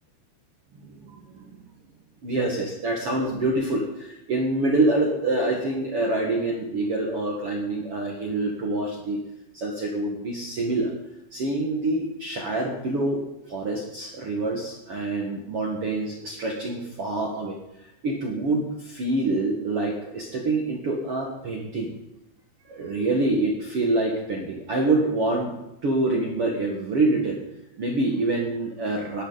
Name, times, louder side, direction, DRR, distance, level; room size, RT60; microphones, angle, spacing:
voice 1, 0.8-1.6 2.2-9.2 9.5-10.9 11.3-13.2 13.5-17.5 17.8-21.9 22.7-25.5 25.8-27.4 27.8-29.2, right 2 dB, 85° right, -1 dB, 1.2 m, -26 dB
20.0 x 11.5 x 4.1 m, 0.85 s
omnidirectional pair, 5.5 m